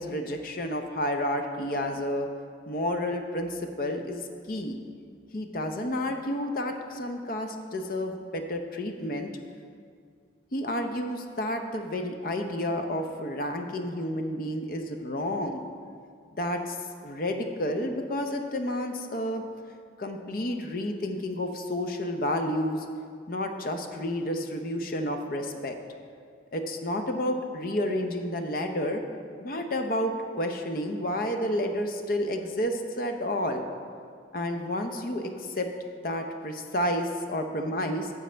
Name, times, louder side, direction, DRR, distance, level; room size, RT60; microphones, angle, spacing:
voice 1, 0.0-2.3 2.7-4.8 5.3-9.3 10.5-15.6 16.4-16.8 17.0-19.4 20.0-22.9 23.3-25.8 26.5-29.0 29.4-33.6 34.3-35.7 36.0-38.1, left 1 dB, 50° left, 5 dB, 0.6 m, -30 dB
10.0 x 6.8 x 3.3 m, 2.1 s
head